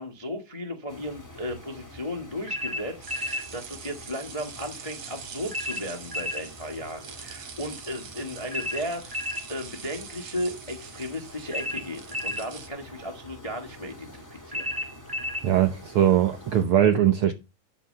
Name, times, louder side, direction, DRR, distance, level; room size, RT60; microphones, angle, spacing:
voice 1, 0.0-14.7, equal, 30° left, 0.5 m, -35 dB
sound 1, 0.9-16.6, left 1 dB, 5° left, 2.2 m, -47 dB
sound 2, 2.5-3.5 5.5-6.5 8.5-9.5 11.5-12.5 14.5-15.5, left 1 dB, 15° right, 0.8 m, -31 dB
sound 3, 3.0-12.7, right 7 dB, 50° right, 2.2 m, -44 dB
voice 2, 15.4-17.3, right 10 dB, 75° right, 1.2 m, -21 dB
11.5 x 4.6 x 6.6 m
omnidirectional pair, 3.4 m